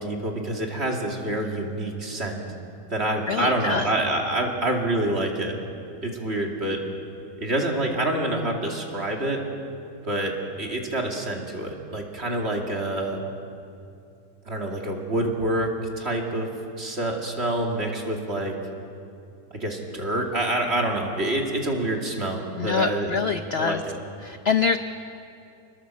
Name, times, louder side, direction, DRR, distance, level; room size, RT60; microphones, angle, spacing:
voice 1, 0.0-2.4 2.9-5.5 6.0-6.8 7.4-9.4 10.0-13.2 14.5-15.7 16.0-18.5 19.5-23.1 23.6-24.0, right 1 dB, 35° right, 1 dB, 2.8 m, -27 dB
voice 2, 3.3-3.9 22.6-23.8 24.2-24.8, left 5 dB, 55° left, 9 dB, 0.7 m, -25 dB
26.5 x 20.5 x 7.5 m, 2.6 s
omnidirectional pair, 1.8 m